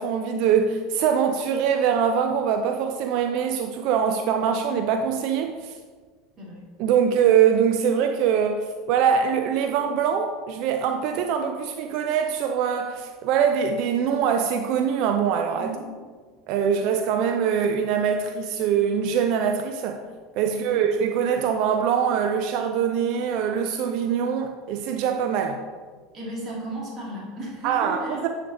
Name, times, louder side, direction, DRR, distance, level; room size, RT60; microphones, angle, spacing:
voice 1, 0.0-5.8 6.8-15.7 16.5-20.0 20.4-25.6 27.6-28.3, right 7 dB, 55° right, 0.5 m, -23 dB
voice 2, 15.6-15.9 20.5-20.8 26.1-28.3, right 1 dB, 35° right, 2.5 m, -35 dB
9.7 x 5.1 x 4.0 m
figure-of-eight pair, 75°, 0 cm